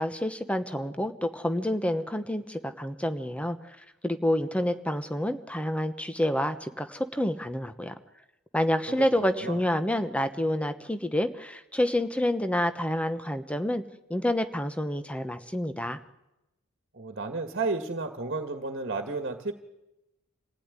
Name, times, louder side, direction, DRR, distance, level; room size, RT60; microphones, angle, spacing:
voice 1, 0.0-3.6 4.0-7.9 8.5-13.8 14.1-16.0, left 1 dB, 5° left, 9 dB, 1.1 m, -28 dB
voice 2, 8.9-9.6 16.9-19.5, right 3 dB, 50° right, 7 dB, 1.8 m, -32 dB
27.0 x 16.5 x 9.8 m, 0.97 s
head